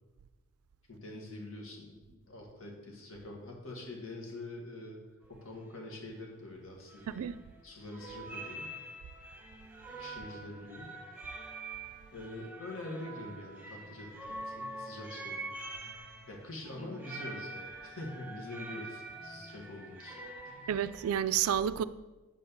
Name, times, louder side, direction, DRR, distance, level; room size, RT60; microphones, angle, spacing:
voice 1, 0.9-5.0 5.3-7.2 7.6-8.7 9.9-10.9 12.1-15.5 16.3-20.2 20.4-20.7, left 2 dB, 65° left, 1.9 m, -45 dB
sound 1, 5.2-5.3 5.6-6.0 6.9-7.6 7.9-21.1, right 2 dB, 5° right, 1.2 m, -45 dB
voice 2, 7.1-7.4 20.7-21.8, right 9 dB, 80° right, 0.3 m, -30 dB
7.5 x 4.4 x 7.0 m
head